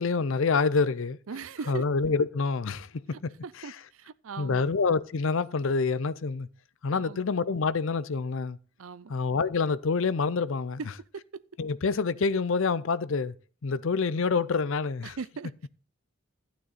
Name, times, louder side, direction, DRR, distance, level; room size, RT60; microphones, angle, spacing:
voice 1, 0.0-1.2 1.7-3.3 3.6-3.8 4.4-6.5 6.8-8.6 9.1-10.8 11.6-13.3 13.6-15.2, left 4 dB, 60° left, 0.5 m, -27 dB
voice 2, 1.3-1.8 3.4-4.6 6.9-7.2 8.8-9.1 11.1-11.2 15.0-15.7, right 5 dB, 70° right, 0.5 m, -39 dB
12.0 x 9.3 x 4.1 m
head